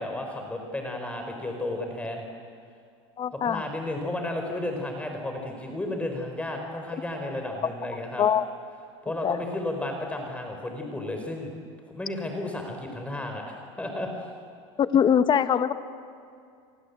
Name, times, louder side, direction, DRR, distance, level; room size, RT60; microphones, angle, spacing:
voice 1, 0.0-2.2 3.3-8.2 9.0-11.5 11.9-13.4 13.8-14.3, left 1 dB, 10° left, 3 dB, 4.3 m, -33 dB
voice 2, 3.2-3.6 8.2-8.4 9.2-9.4 14.8-15.7, left 8 dB, 30° left, 12 dB, 1.3 m, -22 dB
29.5 x 24.0 x 8.3 m, 2.4 s
supercardioid pair, 115°, 16 cm